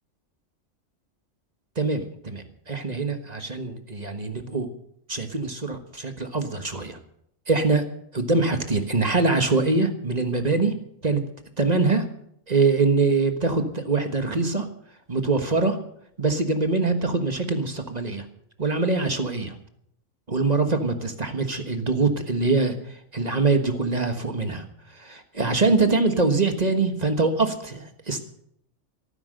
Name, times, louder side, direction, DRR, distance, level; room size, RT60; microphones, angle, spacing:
voice 1, 1.7-4.7 5.1-7.0 7.5-7.8 8.1-10.8 11.0-11.2 11.6-12.0 12.5-14.7 15.1-15.8 16.2-18.2 18.6-19.5 20.3-28.2, right 3 dB, 35° right, 7 dB, 1.5 m, -24 dB
14.0 x 13.0 x 6.6 m, 0.70 s
omnidirectional pair, 1.3 m